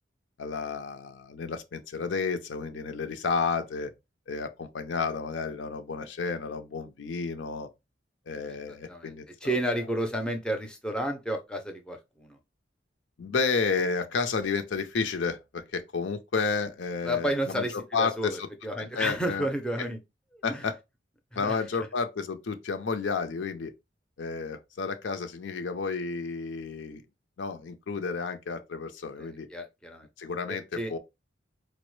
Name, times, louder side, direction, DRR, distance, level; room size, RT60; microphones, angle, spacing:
voice 1, 0.4-3.9 4.3-7.7 8.3-9.6 13.2-18.5 18.8-19.5 20.4-20.7 21.4-23.7 24.2-27.0 27.4-29.5 30.2-31.0, left 5 dB, 80° left, 0.5 m, -31 dB
voice 2, 8.7-9.1 9.4-12.4 17.0-20.0 20.3-20.6 21.3-21.6 29.2-30.1 30.5-30.9, right 1 dB, 5° left, 0.5 m, -32 dB
4.4 x 2.0 x 3.1 m
head